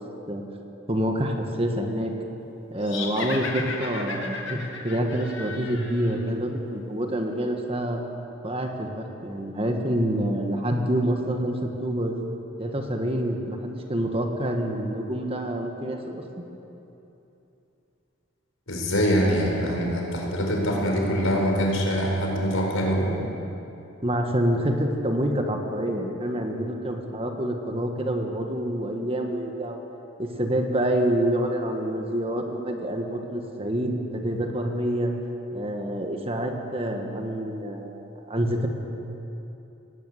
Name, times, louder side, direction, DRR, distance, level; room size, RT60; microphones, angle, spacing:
voice 1, 0.9-2.1 2.7-4.6 4.8-8.0 8.4-12.2 12.6-16.4 24.0-29.8 30.2-35.1 35.5-38.7, right 1 dB, 30° right, 3 dB, 1.7 m, -27 dB
sound 1, 2.8-6.2, left 4 dB, 60° left, 2.3 m, -34 dB
voice 2, 18.7-23.2, equal, 85° left, 0 dB, 4.9 m, -24 dB
18.5 x 18.0 x 8.2 m, 2.9 s
head